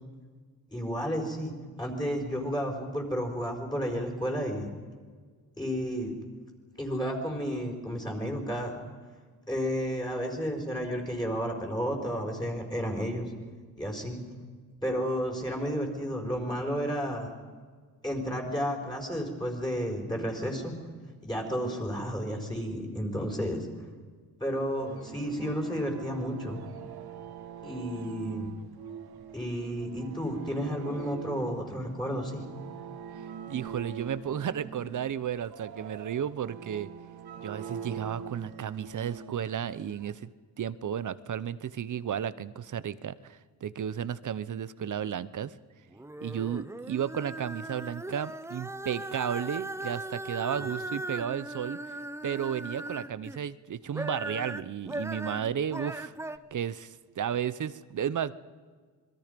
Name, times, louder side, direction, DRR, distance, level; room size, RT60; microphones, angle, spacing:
voice 1, 0.7-1.5 1.8-4.7 5.6-6.1 6.8-8.7 9.5-13.3 13.8-14.2 14.8-17.3 18.0-20.7 21.2-23.7 24.4-26.6 27.6-28.5 29.3-32.4 50.6-50.7, equal, 10° left, 1 dB, 4.8 m, -32 dB
sound 1, 24.8-40.1, right 7 dB, 70° right, 1.6 m, -43 dB
voice 2, 33.5-36.9 37.4-40.3 40.6-45.5 46.2-51.8 52.2-56.1 56.5-58.3, right 9 dB, 50° right, 16 dB, 0.9 m, -33 dB
sound 2, 45.9-53.4 53.8-56.4, right 1 dB, 5° right, 0.7 m, -38 dB
27.0 x 22.0 x 5.3 m, 1.6 s
cardioid pair, 115°, 39 cm